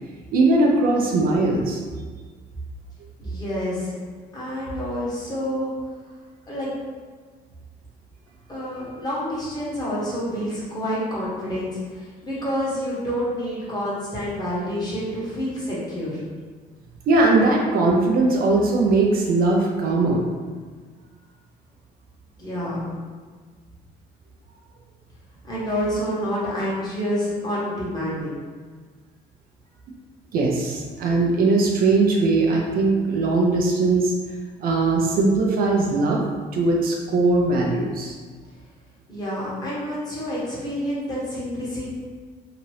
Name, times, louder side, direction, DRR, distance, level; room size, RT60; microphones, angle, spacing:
voice 1, 0.3-1.8 17.1-20.2 30.3-34.1 34.6-36.2 36.5-38.2, right 3 dB, 60° right, -1 dB, 0.5 m, -20 dB
voice 2, 3.2-3.9 4.3-5.7 6.5-6.7 8.5-16.2 22.4-22.8 25.5-28.3 39.1-41.9, equal, 25° left, -8 dB, 1.2 m, -28 dB
2.9 x 2.5 x 3.1 m, 1.5 s
cardioid pair, 110°, 17 cm